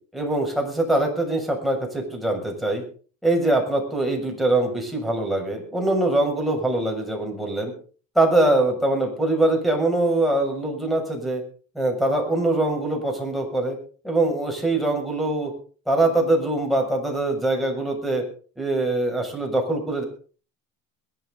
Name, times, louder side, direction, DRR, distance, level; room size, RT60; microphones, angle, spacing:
voice 1, 0.1-2.8 3.2-7.7 8.1-11.4 11.7-13.8 14.0-15.5 15.9-18.2 18.6-20.0, right 2 dB, ahead, 3 dB, 6.9 m, -23 dB
22.0 x 12.0 x 4.1 m, 0.41 s
supercardioid pair, 85°, 38 cm